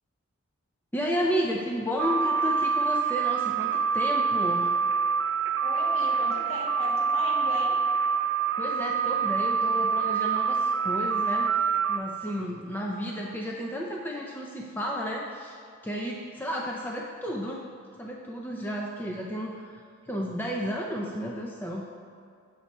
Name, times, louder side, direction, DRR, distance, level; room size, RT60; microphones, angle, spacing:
voice 1, 0.9-4.7 8.6-11.5 11.9-15.5 15.8-17.6 18.0-21.9, equal, 10° left, -1 dB, 0.4 m, -32 dB
sound 1, 2.0-12.0, right 5 dB, 55° right, 0.4 m, -26 dB
voice 2, 5.6-7.7, left 1 dB, 70° left, -5 dB, 1.7 m, -36 dB
7.2 x 4.1 x 5.4 m, 2.3 s
head